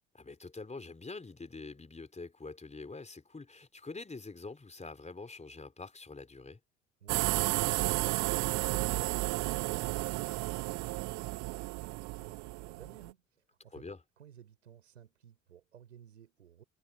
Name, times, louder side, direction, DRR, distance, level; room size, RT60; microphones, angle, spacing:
voice 1, 0.1-6.6 13.7-14.0, left 3 dB, 20° left, 3.9 m, -45 dB
voice 2, 7.0-13.9 14.2-16.6, right 9 dB, 85° right, 5.9 m, -55 dB
sound 1, 7.1-13.1, right 23 dB, 50° right, 0.4 m, -32 dB
figure-of-eight pair, 50°, 36 cm